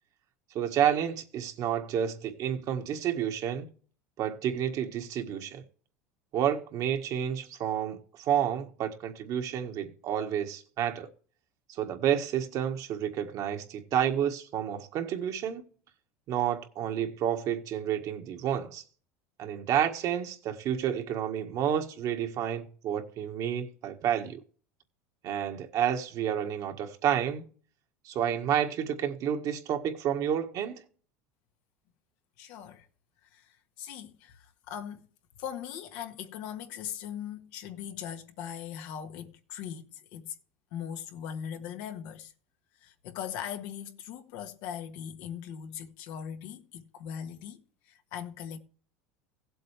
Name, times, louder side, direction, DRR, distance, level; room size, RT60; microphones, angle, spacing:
voice 1, 0.5-3.7 4.2-5.6 6.3-11.1 11.8-15.6 16.3-18.8 19.4-24.4 25.2-27.4 28.0-30.8, right 9 dB, 50° right, 1.7 m, -30 dB
voice 2, 32.4-32.9 33.3-35.1 35.4-40.3 40.7-42.3 42.8-48.6, left 9 dB, 65° left, 1.5 m, -40 dB
16.0 x 7.9 x 3.4 m
supercardioid pair, 100°, 8 cm